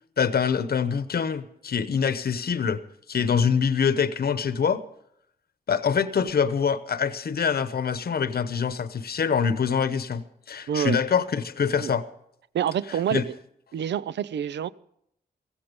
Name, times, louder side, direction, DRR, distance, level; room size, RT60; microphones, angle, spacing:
voice 1, 0.2-2.8 3.1-4.8 5.7-12.1 13.1-13.2, left 6 dB, 65° left, 0.9 m, -25 dB
voice 2, 10.7-11.0 11.8-11.9 12.5-13.3 13.7-14.7, right 9 dB, 90° right, 0.5 m, -27 dB
16.5 x 15.0 x 5.3 m
cardioid pair, 60°, 18 cm